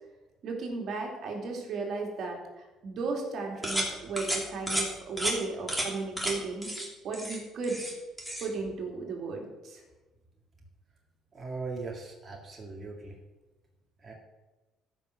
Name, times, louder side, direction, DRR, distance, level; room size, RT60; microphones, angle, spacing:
voice 1, 0.4-6.7 7.0-7.8 8.4-9.8, right 4 dB, 60° right, 1 dB, 2.8 m, -35 dB
sound 1, 3.6-3.9 4.2-4.4 4.7-4.9 5.2-5.3 5.7-5.9 6.2-6.3 6.6-6.9 7.1-7.9 8.2-8.5, equal, ahead, 3.1 m, -31 dB
voice 2, 11.3-13.2 14.0-14.1, right 3 dB, 25° right, 0 dB, 2.0 m, -39 dB
13.5 x 5.9 x 6.6 m, 1.2 s
cardioid pair, 100°, 0 cm